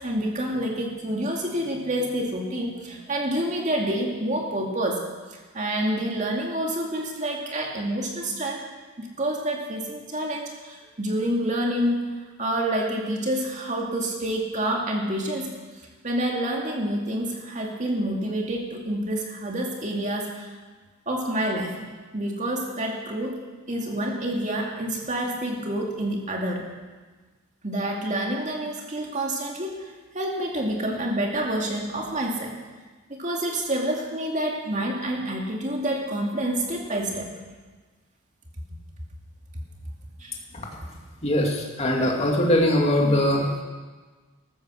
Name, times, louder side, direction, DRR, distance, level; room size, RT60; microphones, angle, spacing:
voice 1, 0.0-5.0 5.5-8.6 9.0-12.1 12.4-15.5 16.0-20.5 21.1-23.4 23.7-26.6 27.6-29.9 30.1-32.6 33.1-37.3 40.2-40.3, right 1 dB, 35° right, 0 dB, 2.4 m, -28 dB
voice 2, 41.2-43.6, left 1 dB, 30° left, 0 dB, 2.4 m, -22 dB
14.0 x 13.5 x 6.4 m, 1.3 s
head